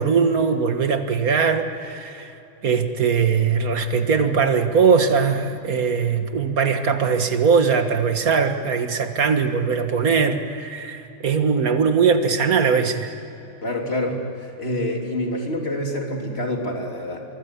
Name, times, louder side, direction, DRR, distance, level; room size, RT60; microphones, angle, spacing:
voice 1, 0.0-2.3 2.6-13.1, right 5 dB, 85° right, 7 dB, 2.0 m, -20 dB
voice 2, 13.6-17.3, left 1 dB, 45° left, 1 dB, 3.4 m, -27 dB
25.0 x 23.5 x 8.4 m, 2.9 s
omnidirectional pair, 1.5 m